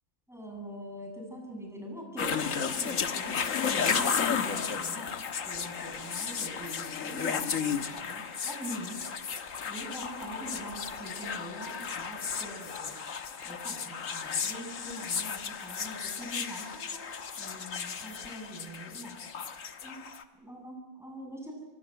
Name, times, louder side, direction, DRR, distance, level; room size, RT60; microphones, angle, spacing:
voice 1, 0.3-9.0 9.6-13.0 13.4-17.0 17.4-19.2 19.8-20.0 20.3-21.5, equal, ahead, 1 dB, 7.6 m, -43 dB
sound 1, 2.2-20.2, left 6 dB, 65° left, 1.7 m, -34 dB
24.5 x 24.5 x 8.0 m, 1.1 s
omnidirectional pair, 1.5 m